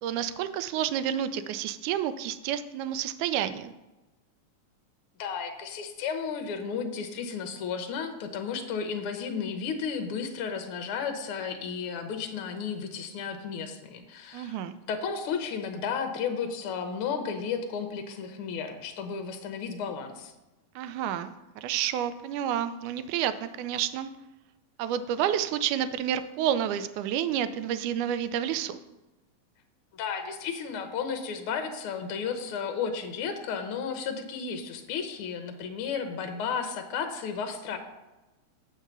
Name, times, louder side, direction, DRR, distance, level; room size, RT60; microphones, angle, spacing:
voice 1, 0.0-3.7 14.3-14.7 20.8-24.1 24.8-28.8, right 10 dB, 85° right, 12 dB, 2.0 m, -30 dB
voice 2, 5.2-14.6 14.9-20.3 29.9-37.8, left 6 dB, 70° left, 6 dB, 1.3 m, -33 dB
7.6 x 4.8 x 6.8 m, 1.0 s
omnidirectional pair, 3.5 m